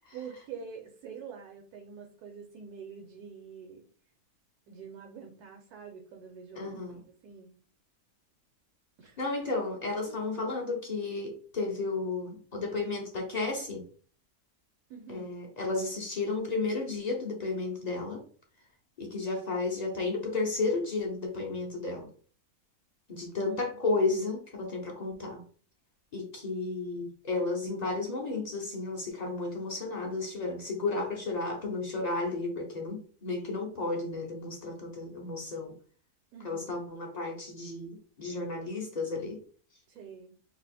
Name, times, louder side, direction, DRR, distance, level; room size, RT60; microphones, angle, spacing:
voice 1, 0.1-3.8 4.7-7.5 9.0-9.2 10.1-10.2 14.9-15.4 23.5-23.8 36.3-36.8 39.9-40.3, right 6 dB, 80° right, 1.2 m, -46 dB
voice 2, 6.6-7.0 9.2-13.8 15.1-18.2 19.0-22.1 23.1-25.4 26.1-35.8 36.4-39.4, left 3 dB, 50° left, 0.4 m, -33 dB
2.8 x 2.5 x 4.1 m
omnidirectional pair, 1.6 m